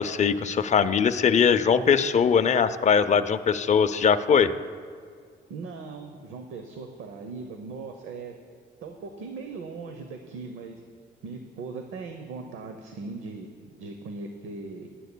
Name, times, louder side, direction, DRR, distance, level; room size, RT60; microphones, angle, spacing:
voice 1, 0.0-4.5, left 6 dB, 35° left, 10 dB, 0.5 m, -21 dB
voice 2, 5.5-8.3 8.8-10.8 11.2-13.5 13.8-14.9, right 4 dB, 85° right, 5 dB, 0.8 m, -39 dB
16.5 x 11.0 x 2.2 m, 2.1 s
cardioid pair, 90°, 20 cm